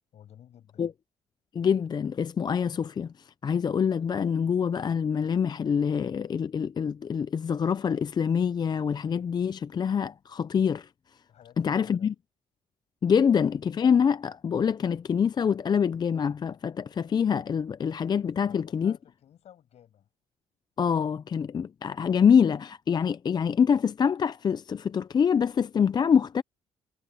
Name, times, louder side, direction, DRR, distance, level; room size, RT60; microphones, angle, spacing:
voice 1, 0.1-0.9 11.3-12.1 18.3-20.1, left 10 dB, 65° left, 6.9 m, -53 dB
voice 2, 1.5-10.9 11.6-12.1 13.0-18.9 20.8-26.4, left 7 dB, 35° left, 0.5 m, -25 dB
cardioid pair, 90°, 12 cm